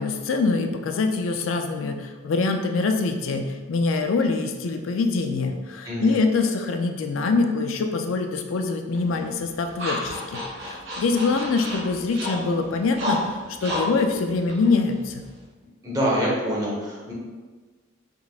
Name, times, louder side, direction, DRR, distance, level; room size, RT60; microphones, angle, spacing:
voice 1, 0.0-15.2, left 3 dB, 85° left, 5 dB, 0.4 m, -24 dB
sound 1, 8.9-15.4, left 1 dB, 60° right, 1.3 m, -32 dB
voice 2, 15.8-17.1, equal, 20° right, -5 dB, 1.0 m, -25 dB
5.3 x 3.4 x 2.4 m, 1.3 s
head